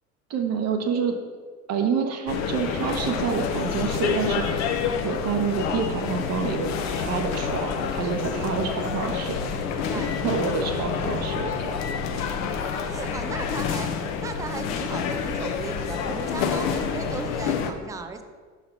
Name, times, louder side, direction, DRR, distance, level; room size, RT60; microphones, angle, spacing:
voice 1, 0.3-1.2 1.7-4.7 5.0-6.7 7.0-9.4 10.0-11.8, right 5 dB, 40° right, 4 dB, 1.0 m, -27 dB
sound 1, 2.3-17.7, left 6 dB, 40° left, 0.7 m, -28 dB
voice 2, 8.0-8.6 9.7-10.5 12.8-13.9 14.2-18.2, right 4 dB, 10° right, 7 dB, 0.3 m, -37 dB
6.4 x 4.1 x 5.6 m, 1.5 s
figure-of-eight pair, 70°, 41 cm